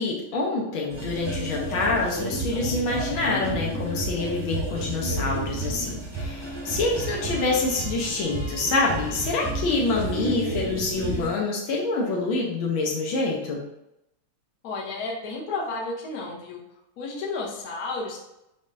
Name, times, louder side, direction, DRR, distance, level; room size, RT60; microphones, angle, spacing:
voice 1, 0.0-13.6, left 3 dB, 75° left, -2 dB, 1.5 m, -26 dB
sound 1, 0.9-11.3, right 1 dB, 25° right, 0.5 m, -31 dB
voice 2, 14.6-16.6 17.0-18.2, left 3 dB, 55° left, -3 dB, 1.2 m, -32 dB
5.3 x 3.5 x 2.6 m, 0.88 s
omnidirectional pair, 2.4 m